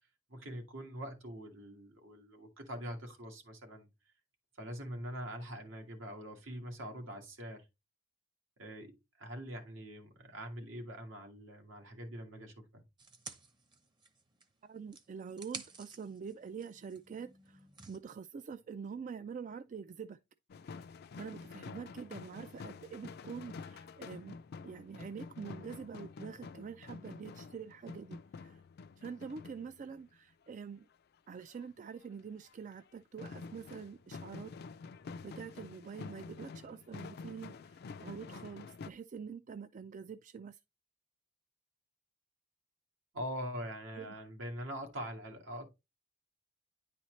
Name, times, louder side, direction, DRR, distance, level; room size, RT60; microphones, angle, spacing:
voice 1, 0.3-3.9 4.6-7.6 8.6-12.8 43.1-45.7, equal, 75° right, 1.8 m, -43 dB
sound 1, 13.0-14.5 14.9-18.0, right 4 dB, 25° right, 0.8 m, -51 dB
voice 2, 14.6-20.2 20.7-24.4 24.6-28.6 29.0-30.9 31.3-34.5 35.2-40.6 44.0-44.1, right 6 dB, 40° right, 0.3 m, -46 dB
sound 2, 20.5-30.1 31.4-31.7 32.0-32.1 32.5-32.9 33.2-38.9, left 4 dB, 55° left, 0.4 m, -48 dB
9.8 x 4.2 x 3.1 m
head